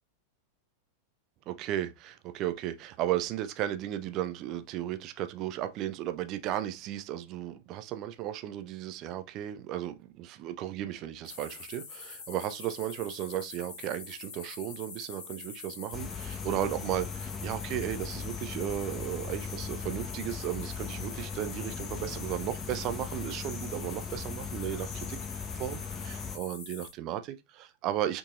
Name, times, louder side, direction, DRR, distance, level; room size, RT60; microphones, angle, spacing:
voice 1, 1.5-28.2, right 12 dB, 40° right, 0.4 m, -35 dB
sound 1, 11.2-26.9, left 5 dB, 60° left, 1.1 m, -45 dB
sound 2, 15.9-26.4, left 6 dB, 20° left, 0.7 m, -39 dB
3.7 x 2.8 x 2.3 m
figure-of-eight pair, 90°, 0 cm